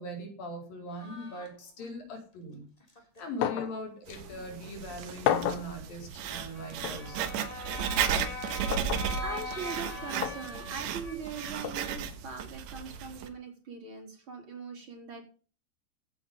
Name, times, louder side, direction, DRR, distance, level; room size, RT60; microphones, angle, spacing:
voice 1, 0.0-2.6 3.2-7.2, equal, 50° left, 1 dB, 5.8 m, -40 dB
sound 1, 0.9-2.0 2.8-3.3 4.1-4.8 6.5-11.5, left 1 dB, 10° left, 2.8 m, -42 dB
sound 2, 3.4-3.8 4.1-4.2 5.3-5.7 6.8-7.0 8.7-9.1 10.2-10.4 11.6-11.8, left 11 dB, 75° left, 3.1 m, -30 dB
Writing, 4.1-13.3, right 8 dB, 75° right, 3.6 m, -35 dB
voice 2, 9.2-15.2, right 5 dB, 30° right, 3 dB, 4.2 m, -41 dB
16.0 x 8.2 x 5.5 m, 0.38 s
omnidirectional pair, 5.2 m